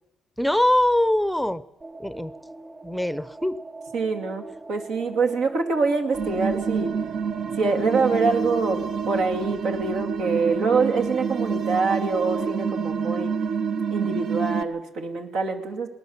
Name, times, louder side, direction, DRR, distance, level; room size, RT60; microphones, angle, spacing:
voice 1, 0.4-1.6 2.0-2.3 2.8-3.6, left 1 dB, ahead, 16 dB, 0.7 m, -22 dB
sound 1, 1.8-8.3, right 3 dB, 25° right, 3.5 m, -42 dB
voice 2, 3.9-6.9 7.6-13.3 13.9-15.9, right 4 dB, 80° right, 3 dB, 2.6 m, -25 dB
sound 2, 6.1-14.6, right 6 dB, 65° right, 0.9 m, -28 dB
21.0 x 18.5 x 7.3 m, 0.96 s
cardioid pair, 90°, 0 cm